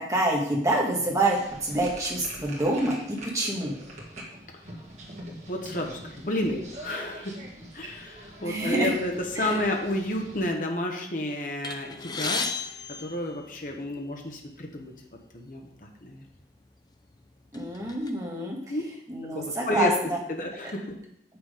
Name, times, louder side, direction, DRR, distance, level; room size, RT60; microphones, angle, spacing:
voice 1, 0.0-3.8 8.4-8.9 9.3-9.7 17.5-18.8 19.1-20.2, right 1 dB, 20° right, -2 dB, 1.4 m, -27 dB
sound 1, 1.3-10.5, right 1 dB, 40° right, 1.8 m, -44 dB
voice 2, 5.5-7.4 7.7-12.5 13.0-14.9 15.3-16.2 18.7-18.8 19.3-19.9 20.3-21.0, left 1 dB, 45° left, 2 dB, 1.0 m, -31 dB
sound 2, 11.6-14.0 14.8-14.9 15.3-15.4 16.3-16.4 16.9-18.1, left 4 dB, 25° left, 0.5 m, -34 dB
7.2 x 6.0 x 5.0 m, 0.76 s
head